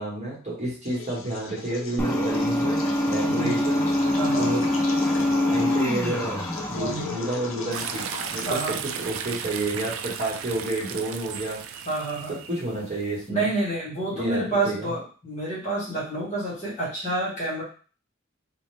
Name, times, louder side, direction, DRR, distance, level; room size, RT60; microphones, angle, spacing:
voice 1, 0.0-3.8 4.4-4.7 5.1-6.4 6.7-11.6 12.3-13.4 14.1-14.9, right 2 dB, 35° right, -5 dB, 1.3 m, -30 dB
sound 1, 0.8-9.4, left 5 dB, 75° left, 0.4 m, -38 dB
sound 2, 2.0-8.4, left 1 dB, 10° left, 0.3 m, -25 dB
voice 2, 3.2-3.7 4.2-4.5 6.7-7.2 8.4-8.8 11.8-12.4 13.3-17.6, right 2 dB, 35° left, -6 dB, 1.4 m, -28 dB
sound 3, 7.7-13.3, right 8 dB, 75° right, 0.3 m, -35 dB
2.6 x 2.4 x 3.2 m, 0.38 s
head